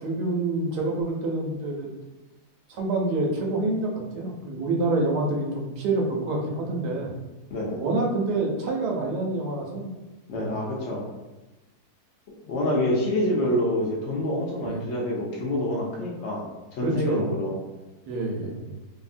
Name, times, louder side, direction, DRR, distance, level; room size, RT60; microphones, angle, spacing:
voice 1, 0.0-1.9 2.7-7.1 7.8-9.9 10.3-10.5 14.6-14.8 16.8-17.3 18.1-18.8, right 2 dB, 80° right, 0 dB, 1.1 m, -27 dB
voice 2, 7.5-7.8 10.3-11.1 12.4-17.6 18.4-18.6, left 1 dB, 70° left, -3 dB, 0.6 m, -27 dB
2.7 x 2.6 x 2.5 m, 1.1 s
omnidirectional pair, 1.7 m